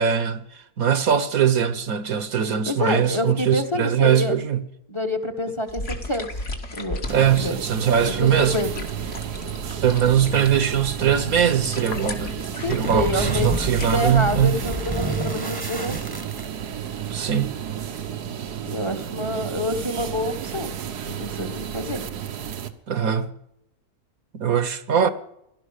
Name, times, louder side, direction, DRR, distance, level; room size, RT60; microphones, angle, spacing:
voice 1, 0.0-4.6 7.1-8.6 9.8-12.4 12.7-14.6 17.1-17.5 22.9-23.3 24.3-25.1, right 8 dB, 65° right, 1.4 m, -21 dB
voice 2, 2.7-4.3 4.9-6.3 6.7-7.0 7.4-7.6 8.2-8.7 12.6-16.0 18.7-20.7 21.1-22.0, left 1 dB, 20° left, 1.3 m, -27 dB
sound 1, 5.7-14.1, left 1 dB, 50° left, 2.2 m, -36 dB
sound 2, 7.1-22.7, right 9 dB, 90° right, 1.6 m, -32 dB
sound 3, 12.7-16.9, right 2 dB, 15° right, 1.0 m, -29 dB
17.0 x 12.0 x 6.5 m
omnidirectional pair, 1.7 m